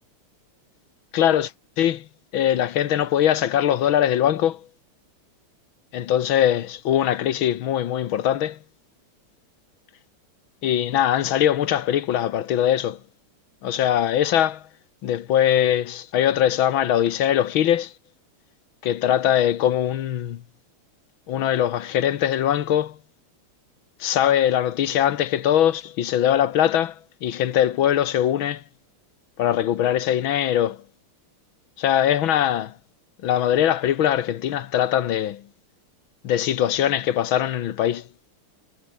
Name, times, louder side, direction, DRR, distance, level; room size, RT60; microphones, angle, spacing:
voice 1, 1.1-1.5 1.8-2.1 2.3-4.7 5.9-8.6 10.6-13.0 13.6-14.6 15.0-17.9 18.8-20.4 21.3-23.0 24.0-28.6 29.4-30.8 31.8-32.7 33.2-35.4 36.2-38.1, left 10 dB, 70° left, 1.8 m, -21 dB
omnidirectional pair, 2.4 m